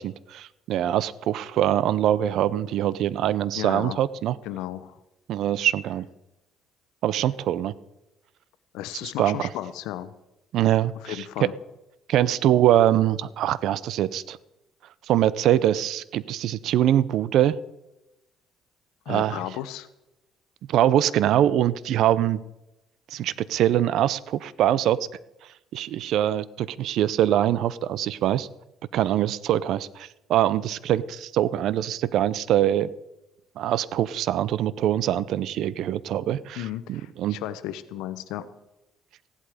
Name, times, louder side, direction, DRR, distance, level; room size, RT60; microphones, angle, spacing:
voice 1, 0.0-4.4 5.3-6.1 7.0-7.7 9.2-9.5 10.5-11.5 12.1-14.4 15.1-17.6 19.1-19.4 20.7-22.4 23.1-25.1 25.7-28.5 28.9-32.9 33.6-37.4, right 11 dB, 65° right, 19 dB, 0.5 m, -23 dB
voice 2, 3.6-4.0 4.4-5.0 8.7-10.1 11.0-11.5 19.1-19.9 36.6-38.5, left 13 dB, 90° left, 14 dB, 0.9 m, -34 dB
15.5 x 11.0 x 5.0 m, 0.96 s
cardioid pair, 130°, 0 cm